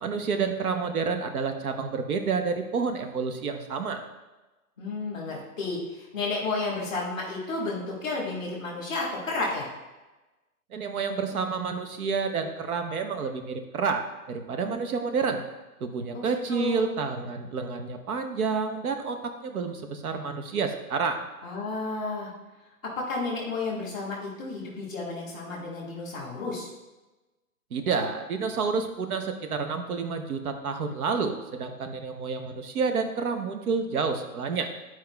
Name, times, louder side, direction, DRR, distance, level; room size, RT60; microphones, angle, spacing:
voice 1, 0.0-4.0 10.7-14.0 14.3-15.4 15.8-21.2 27.7-34.7, right 5 dB, 75° right, 6 dB, 0.9 m, -29 dB
voice 2, 4.8-9.7 16.1-16.9 21.4-22.3 23.0-26.7, left 3 dB, 5° right, -14 dB, 0.5 m, -32 dB
9.5 x 4.6 x 2.3 m, 1.1 s
hypercardioid pair, 175°, 44 cm